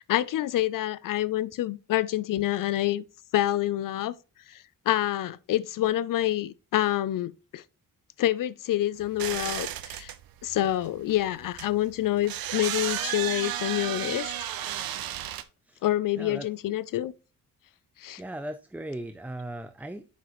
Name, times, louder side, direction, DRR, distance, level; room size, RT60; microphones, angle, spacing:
voice 1, 0.0-3.0 3.3-4.1 4.5-4.6 4.9-7.6 8.2-10.1 10.4-14.3 15.8-17.1 18.0-18.2, left 13 dB, 70° left, 0.5 m, -27 dB
sound 1, 9.0-15.4, right 12 dB, 85° right, 0.7 m, -33 dB
voice 2, 16.2-16.5 18.2-20.1, right 1 dB, 5° right, 0.4 m, -38 dB
7.3 x 5.9 x 3.0 m
cardioid pair, 105°, 34 cm